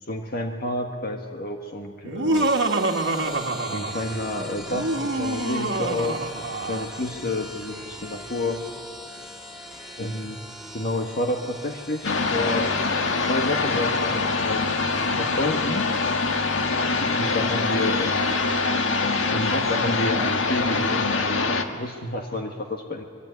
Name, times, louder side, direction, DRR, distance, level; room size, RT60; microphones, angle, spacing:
voice 1, 0.0-2.5 3.7-6.2 6.7-8.6 10.0-10.4 10.7-12.7 13.3-15.9 17.0-18.5 19.3-23.0, left 2 dB, 55° left, 3 dB, 1.8 m, -30 dB
Laughter, 2.0-4.2 4.7-7.0, right 2 dB, 65° right, 1.7 m, -26 dB
sound 1, 2.3-21.5, equal, 5° right, 3.0 m, -42 dB
sound 2, 12.0-21.6, left 3 dB, 90° left, 1.7 m, -24 dB
24.5 x 23.0 x 9.6 m, 2.2 s
head